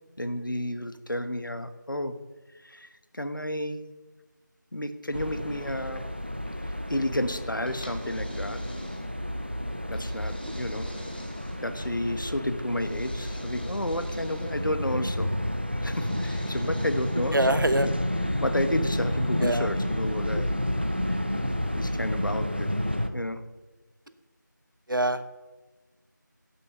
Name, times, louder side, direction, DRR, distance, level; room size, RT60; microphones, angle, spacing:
voice 1, 0.2-2.1 2.6-3.9 4.7-6.0 6.9-8.6 9.9-10.9 11.6-15.3 15.8-18.0 18.2-20.5 21.1-21.3 21.7-22.7 23.1-23.4, left 1 dB, 80° left, 10 dB, 1.2 m, -31 dB
sound 1, 5.1-23.1, equal, 30° right, 0.6 m, -30 dB
sound 2, 7.7-9.3 9.9-11.9 12.8-14.7 15.8-17.4, equal, 30° left, 0.9 m, -45 dB
voice 2, 17.3-17.9 19.4-19.7 24.9-25.4, right 1 dB, 90° right, 11 dB, 1.0 m, -24 dB
11.0 x 7.1 x 6.6 m, 1.2 s
figure-of-eight pair, 180°, 11 cm